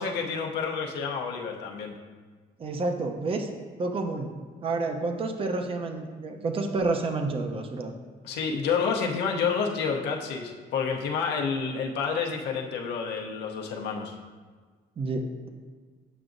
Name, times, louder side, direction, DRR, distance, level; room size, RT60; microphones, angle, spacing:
voice 1, 0.0-1.9 8.2-14.1, left 5 dB, 80° left, 0 dB, 0.8 m, -29 dB
voice 2, 2.6-3.5 3.8-4.3 4.6-7.9 15.0-15.5, right 3 dB, 35° right, 5 dB, 0.6 m, -29 dB
8.0 x 5.9 x 2.6 m, 1.5 s
cardioid pair, 110°, 17 cm